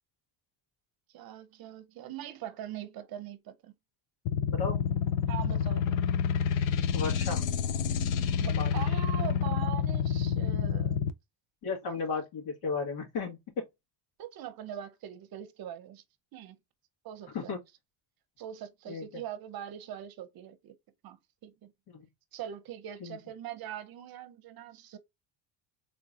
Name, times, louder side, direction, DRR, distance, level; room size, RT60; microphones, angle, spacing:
voice 1, 1.1-3.7 5.3-6.0 8.4-11.0 11.8-12.0 14.2-16.0 16.3-16.6 17.0-17.6 18.4-20.8 21.0-21.7 22.3-25.0, right 11 dB, 50° right, 0.7 m, -42 dB
sound 1, 4.3-11.1, left 7 dB, 65° left, 0.6 m, -28 dB
voice 2, 6.9-7.4 8.5-8.7 11.6-13.6 17.3-17.6 18.9-19.0 21.9-22.0 23.0-23.2, left 4 dB, 90° left, 2.2 m, -34 dB
3.7 x 3.7 x 2.7 m
cardioid pair, 165°, 49 cm